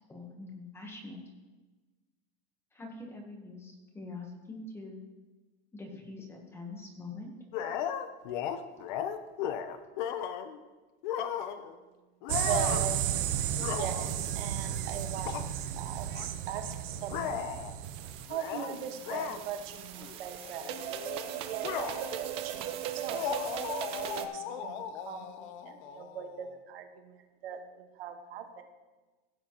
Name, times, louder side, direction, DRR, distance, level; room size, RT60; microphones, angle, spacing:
voice 1, 0.1-1.2 2.7-5.0 5.7-7.3, left 2 dB, 10° left, 1 dB, 1.0 m, -44 dB
sound 1, 7.5-10.6 11.0-11.8 12.2-12.9 13.5-14.2 15.2-15.5 16.1-16.3 17.1-17.7 18.3-18.7 19.1-19.4 20.0-20.2 20.4-22.3 23.1-26.5, left 9 dB, 55° left, 0.7 m, -36 dB
sound 2, 12.3-18.3, right 10 dB, 65° right, 0.7 m, -33 dB
voice 2, 12.4-13.2 13.7-17.5 18.3-20.8 21.5-23.4 24.1-28.6, right 8 dB, 85° right, 6 dB, 1.4 m, -40 dB
sound 3, 17.8-24.3, right 10 dB, 20° right, 0.3 m, -38 dB
16.0 x 7.9 x 2.9 m, 1.2 s
supercardioid pair, 175°, 29 cm